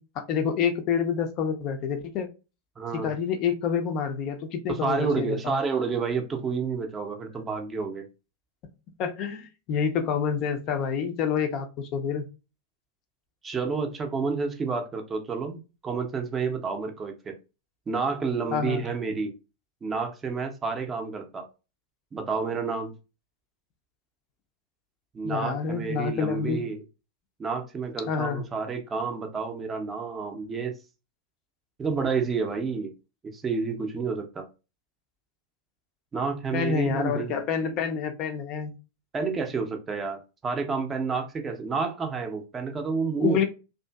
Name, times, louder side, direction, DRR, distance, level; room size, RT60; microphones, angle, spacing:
voice 1, 0.0-2.3 2.9-5.6 9.0-12.3 18.5-18.9 25.2-26.6 28.1-28.4 36.5-38.7 43.2-43.5, left 7 dB, 40° left, 0.4 m, -28 dB
voice 2, 2.8-3.1 4.8-8.1 13.4-17.4 17.9-19.3 19.8-21.5 22.1-22.9 25.1-26.8 27.4-30.7 31.8-32.9 33.3-34.5 36.1-37.3 39.1-43.5, right 4 dB, 20° right, 0.5 m, -29 dB
2.5 x 2.4 x 2.2 m
figure-of-eight pair, 90°, 0 cm